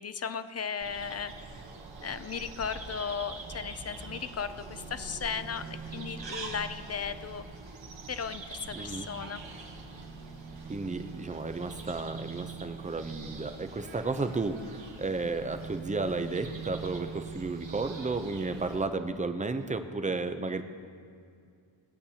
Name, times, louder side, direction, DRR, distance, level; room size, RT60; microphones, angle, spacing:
voice 1, 0.0-1.3 2.0-7.4 8.1-9.4, left 6 dB, 35° left, 12 dB, 0.5 m, -36 dB
sound 1, 0.8-18.9, right 4 dB, 75° right, 1.4 m, -43 dB
voice 2, 8.7-9.1 10.7-20.6, right 3 dB, 15° right, 9 dB, 0.5 m, -33 dB
17.5 x 8.6 x 2.8 m, 2.3 s
wide cardioid pair, 100°, 45 cm